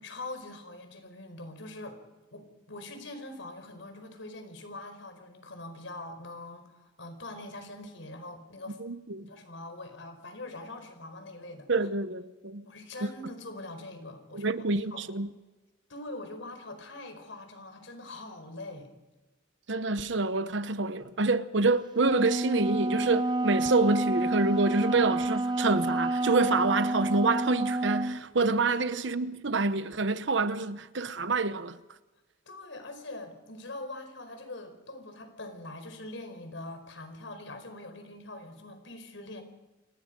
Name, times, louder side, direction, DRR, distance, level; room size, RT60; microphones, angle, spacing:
voice 1, 0.0-2.0 2.3-8.8 9.2-11.7 12.6-14.6 14.9-15.0 15.9-18.9 28.7-28.8 32.5-39.4, left 2 dB, 75° left, 4.9 m, -43 dB
voice 2, 8.8-9.3 11.7-12.6 13.0-13.1 14.3-15.3 19.7-31.8, right 3 dB, 70° right, 1.0 m, -27 dB
Wind instrument woodwind instrument, 21.9-28.2, right 2 dB, 20° right, 0.8 m, -29 dB
29.0 x 20.0 x 5.4 m
head